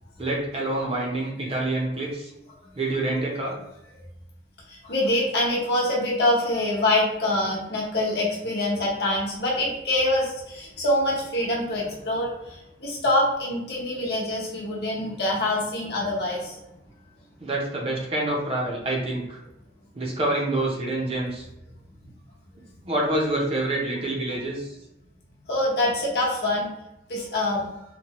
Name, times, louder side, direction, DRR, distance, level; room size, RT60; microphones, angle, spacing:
voice 1, 0.2-2.3 2.8-3.6 17.4-19.4 19.9-21.5 22.8-24.7, right 2 dB, 30° right, -2 dB, 0.5 m, -27 dB
voice 2, 4.7-16.6 25.5-26.7 27.1-27.6, left 1 dB, 60° left, -4 dB, 0.8 m, -25 dB
2.9 x 2.1 x 2.9 m, 0.88 s
head